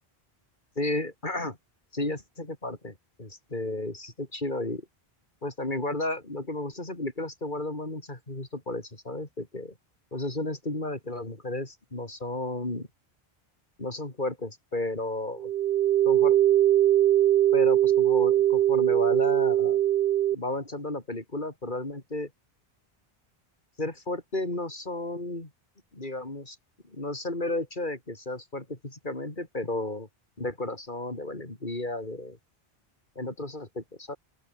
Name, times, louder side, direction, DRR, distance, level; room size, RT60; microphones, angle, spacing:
voice 1, 0.8-1.6 1.9-4.8 5.4-9.7 10.1-12.9 13.8-15.5 16.1-16.4 17.5-19.8 20.3-22.3 23.8-25.5 25.9-26.6 26.9-30.1 30.4-32.4 33.2-34.2, left 2 dB, 50° left, 4.4 m, -33 dB
sound 1, 15.4-20.3, right 12 dB, 70° right, 0.8 m, -21 dB
open air
omnidirectional pair, 1.1 m